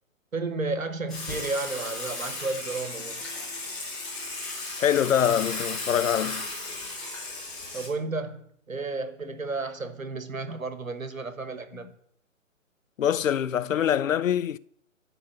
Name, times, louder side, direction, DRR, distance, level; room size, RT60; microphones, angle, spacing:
voice 1, 0.3-3.2 7.7-11.9, right 3 dB, 80° right, 1.3 m, -32 dB
Water / Water tap faucet / Sink (filling or washing), 1.1-7.9, left 2 dB, ahead, 0.5 m, -35 dB
voice 2, 4.8-6.5 13.0-14.6, left 9 dB, 75° left, 0.5 m, -24 dB
11.0 x 3.6 x 7.2 m
figure-of-eight pair, 130°, 40 cm